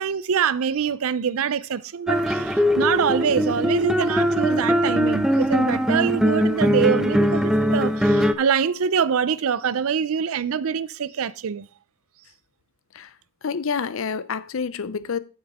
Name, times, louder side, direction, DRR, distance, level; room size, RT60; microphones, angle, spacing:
voice 1, 0.0-11.7, right 7 dB, 70° right, 0.4 m, -24 dB
sound 1, 2.1-8.3, equal, 5° right, 0.4 m, -21 dB
voice 2, 13.4-15.2, left 6 dB, 65° left, 0.5 m, -28 dB
11.0 x 6.4 x 3.5 m
head